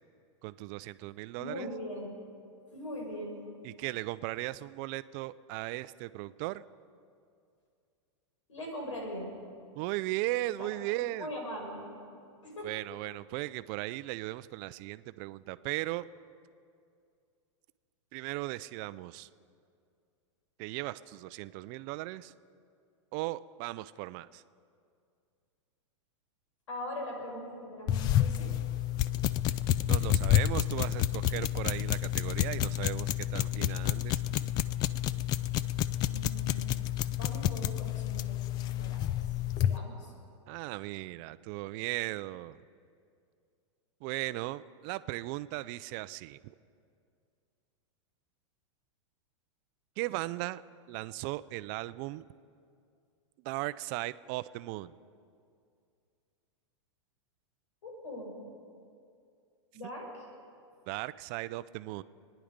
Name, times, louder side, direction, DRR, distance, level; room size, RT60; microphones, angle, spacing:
voice 1, 0.4-1.7 3.6-6.6 9.7-11.3 12.6-16.1 18.1-19.3 20.6-22.3 23.1-24.4 29.9-34.2 40.5-42.6 44.0-46.4 50.0-50.6 50.9-52.3 53.4-54.9 59.8-59.9 60.9-62.0, right 18 dB, 40° right, 15 dB, 0.5 m, -37 dB
voice 2, 1.3-2.2 2.7-3.4 8.5-9.3 10.6-10.7 11.0-12.0 12.4-13.1 26.7-28.5 36.0-36.7 37.2-39.1 39.6-40.1 57.8-58.4 59.7-60.3, equal, 90° left, 1 dB, 5.2 m, -41 dB
sound 1, 27.9-39.8, left 12 dB, 25° left, 0.3 m, -29 dB
26.5 x 10.0 x 5.2 m, 2.4 s
hypercardioid pair, 140°, 16 cm